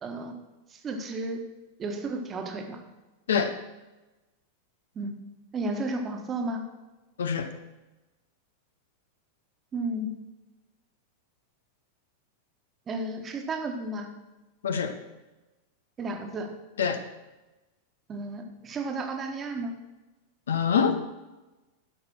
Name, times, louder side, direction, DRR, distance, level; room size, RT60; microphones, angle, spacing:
voice 1, 0.0-0.3 0.7-1.4 1.8-2.8 4.9-5.2 5.5-6.6 9.7-10.1 12.9-14.1 16.0-16.5 18.1-19.7, right 2 dB, 25° right, 4 dB, 1.5 m, -33 dB
voice 2, 7.2-7.5 14.6-14.9 16.8-17.0 20.5-21.0, left 6 dB, 65° left, 8 dB, 0.9 m, -25 dB
12.0 x 5.9 x 6.1 m, 1.1 s
figure-of-eight pair, 90°, 0 cm